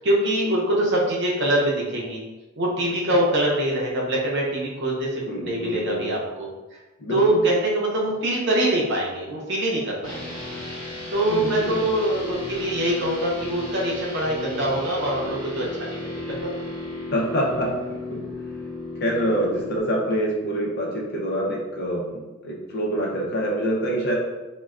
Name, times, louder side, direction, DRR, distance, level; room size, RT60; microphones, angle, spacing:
voice 1, 0.0-2.2 2.6-6.8 7.1-10.3 11.1-16.5, right 1 dB, 55° right, -4 dB, 0.7 m, -24 dB
voice 2, 5.3-6.0 7.0-7.4 11.3-11.8 17.1-18.2 19.0-22.0 22.4-24.1, right 1 dB, 50° left, -2 dB, 0.6 m, -26 dB
sound 1, 10.0-19.8, left 2 dB, 15° left, 0.9 m, -34 dB
3.2 x 2.2 x 2.4 m, 1.1 s
head